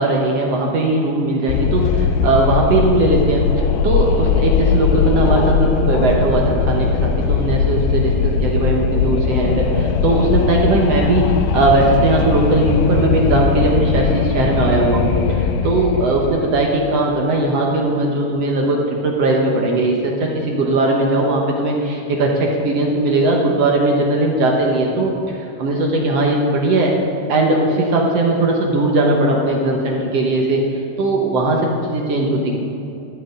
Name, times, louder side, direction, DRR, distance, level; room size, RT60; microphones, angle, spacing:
voice 1, 0.0-26.9 27.3-32.5, right 2 dB, 65° right, -1 dB, 1.8 m, -18 dB
Wind, 1.5-16.8, left 6 dB, 85° left, 2.3 m, -19 dB
12.5 x 7.7 x 5.2 m, 2.8 s
omnidirectional pair, 3.8 m